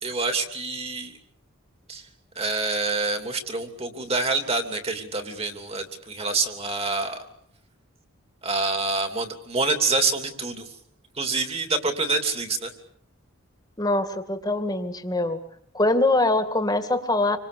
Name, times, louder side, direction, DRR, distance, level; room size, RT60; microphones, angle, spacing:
voice 1, 0.0-1.2 1.9-2.1 2.4-7.2 8.4-10.6 11.1-12.7, right 3 dB, 25° right, 6 dB, 3.0 m, -26 dB
voice 2, 13.8-15.4 15.7-17.4, left 2 dB, 15° left, 8 dB, 2.2 m, -23 dB
28.0 x 25.0 x 7.0 m, 0.66 s
head